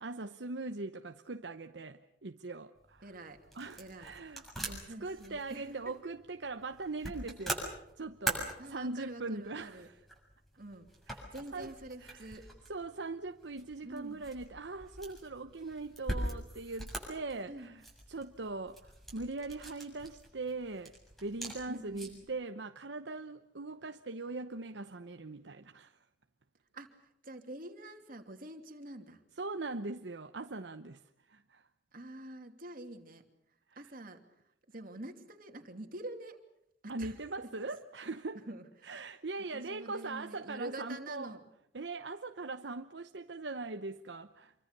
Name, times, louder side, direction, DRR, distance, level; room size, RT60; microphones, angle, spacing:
voice 1, 0.0-3.1 3.5-4.5 5.0-10.0 11.1-11.7 12.0-12.4 12.7-17.8 18.1-26.0 29.4-31.0 31.3-31.6 33.7-33.9 36.9-38.4 38.8-41.3 41.7-44.5, right 3 dB, 70° right, 0.9 m, -41 dB
sound 1, 2.8-22.3, right 1 dB, ahead, 7.2 m, -44 dB
voice 2, 3.0-3.4 3.8-4.1 4.6-5.8 8.6-9.9 10.6-10.9 11.3-12.4 13.8-14.2 17.5-17.7 21.7-22.2 26.7-27.0 27.2-29.2 31.9-33.2 33.7-34.2 34.7-36.4 36.8-37.5 38.3-39.0 39.5-41.4, right 1 dB, 50° right, 2.9 m, -46 dB
27.0 x 24.0 x 6.8 m
head